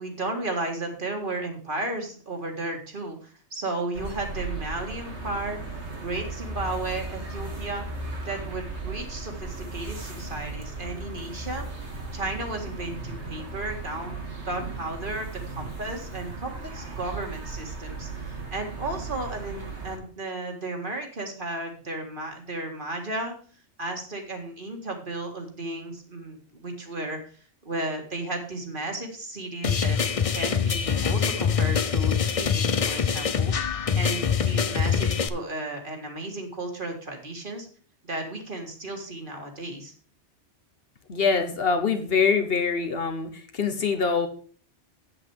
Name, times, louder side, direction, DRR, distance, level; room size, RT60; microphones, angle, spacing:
voice 1, 0.0-5.6 6.0-7.9 8.3-11.7 12.1-14.2 14.5-23.3 23.8-27.2 27.6-30.0 30.3-33.7 34.0-37.7 38.0-39.9, right 2 dB, 45° right, 3 dB, 1.9 m, -34 dB
sound 1, 3.9-20.0, right 3 dB, 75° right, 2.2 m, -36 dB
sound 2, 29.6-35.3, left 6 dB, 40° left, 0.5 m, -24 dB
voice 2, 41.1-44.3, left 5 dB, 60° left, 7 dB, 1.2 m, -24 dB
8.0 x 8.0 x 4.7 m, 0.43 s
omnidirectional pair, 1.2 m